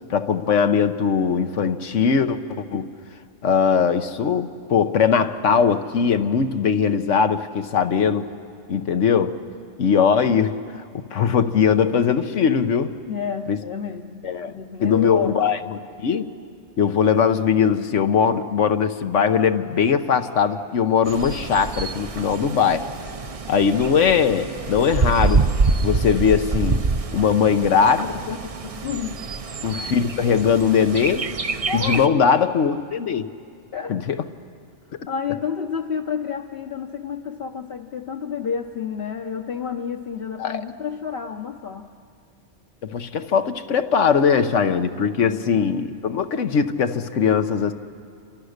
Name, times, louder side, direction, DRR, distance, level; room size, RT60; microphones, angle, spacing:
voice 1, 0.1-2.9 3.4-8.3 8.7-9.4 9.8-10.6 10.9-13.0 13.5-13.6 14.2-14.5 14.8-15.6 16.0-16.3 16.8-22.9 23.5-25.5 25.8-26.8 27.1-28.4 28.6-28.7 29.6-31.3 31.7-33.3 33.9-34.2 40.4-40.6 42.8-47.7, left 6 dB, 80° left, 1.3 m, -20 dB
voice 2, 13.1-15.7 23.2-23.4 28.8-29.2 31.7-32.1 33.7-34.0 35.1-41.9 45.2-45.7, left 6 dB, 55° left, 1.1 m, -30 dB
Bird, 21.1-32.1, right 4 dB, 35° right, 0.6 m, -26 dB
28.0 x 26.5 x 6.6 m
omnidirectional pair, 1.3 m